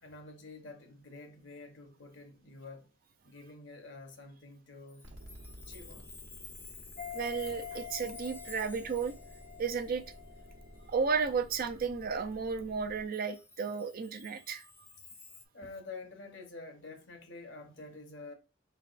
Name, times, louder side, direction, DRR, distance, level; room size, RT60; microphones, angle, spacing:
voice 1, 0.0-2.9 3.2-5.1 5.7-6.1 15.5-18.3, left 3 dB, 65° left, 1.0 m, -48 dB
Chime, 4.9-11.0 11.4-11.5 13.1-15.5, left 4 dB, 10° left, 0.4 m, -53 dB
sound 1, 5.0-13.1, equal, 70° right, 1.0 m, -53 dB
sound 2, 7.0-10.9 11.2-11.3, left 9 dB, 40° left, 0.7 m, -46 dB
voice 2, 7.1-9.2 9.6-10.0 10.9-14.7, right 5 dB, 50° right, 0.5 m, -33 dB
4.0 x 3.4 x 2.5 m
head